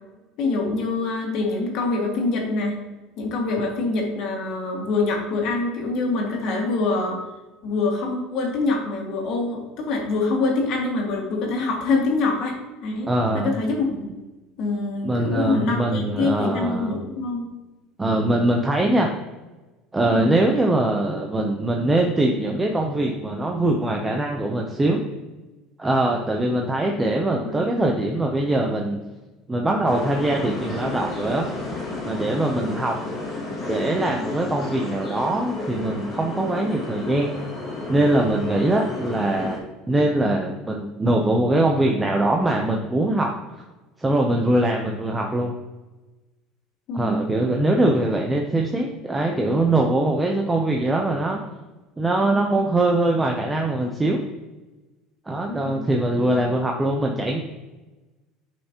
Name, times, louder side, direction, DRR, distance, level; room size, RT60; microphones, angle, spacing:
voice 1, 0.4-2.8 3.2-7.2 7.6-12.6 12.8-13.1 13.3-14.1 14.6-17.5 20.0-20.4 27.4-27.8 46.9-47.3 55.5-55.8, left 3 dB, 45° left, 1 dB, 1.9 m, -25 dB
voice 2, 13.1-13.6 15.0-17.0 18.0-19.1 19.9-25.0 25.8-29.0 29.5-31.5 32.0-33.0 33.7-37.3 37.9-39.6 39.9-43.3 44.0-45.5 46.9-51.4 52.0-54.2 55.3-57.4, right 1 dB, 10° right, 1 dB, 0.6 m, -22 dB
sound 1, 29.9-39.6, left 2 dB, 25° left, 2.0 m, -32 dB
10.0 x 5.6 x 2.9 m, 1.1 s
cardioid pair, 170°, 0 cm